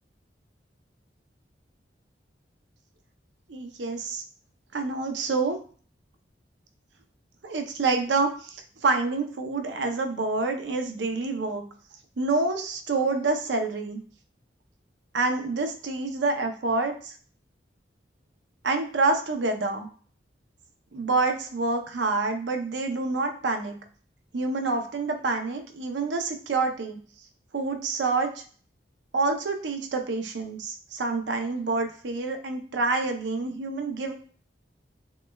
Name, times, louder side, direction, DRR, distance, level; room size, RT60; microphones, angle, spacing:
voice 1, 3.5-4.2 4.7-5.6 7.4-11.6 12.2-14.0 15.1-17.1 18.6-19.9 20.9-23.8 24.3-27.0 27.5-28.4 29.1-34.1, right 3 dB, 85° right, 5 dB, 0.6 m, -27 dB
6.0 x 2.2 x 2.3 m, 0.43 s
head